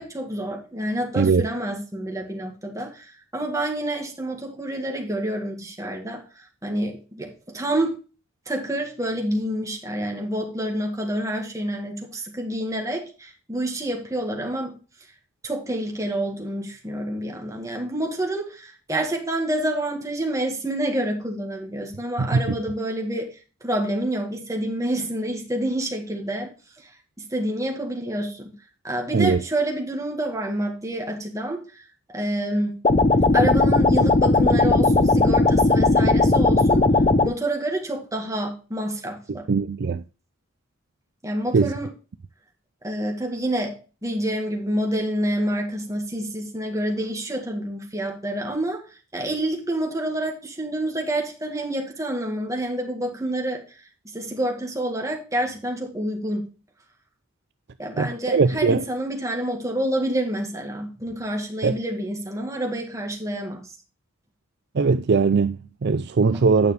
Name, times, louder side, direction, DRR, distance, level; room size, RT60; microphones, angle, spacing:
voice 1, 0.0-8.0 8.5-14.8 15.4-26.5 27.2-28.5 28.8-31.8 32.1-32.8 33.3-36.8 37.2-39.5 41.2-41.9 42.8-48.8 49.1-53.6 54.1-56.4 57.8-63.6, right 1 dB, 15° right, 1.9 m, -28 dB
sound 1, 32.8-37.3, left 2 dB, 30° left, 0.6 m, -17 dB
voice 2, 39.5-40.0 41.5-41.7 58.0-58.8 61.6-61.8 64.7-66.7, right 4 dB, 55° right, 0.4 m, -20 dB
9.5 x 6.5 x 3.3 m
head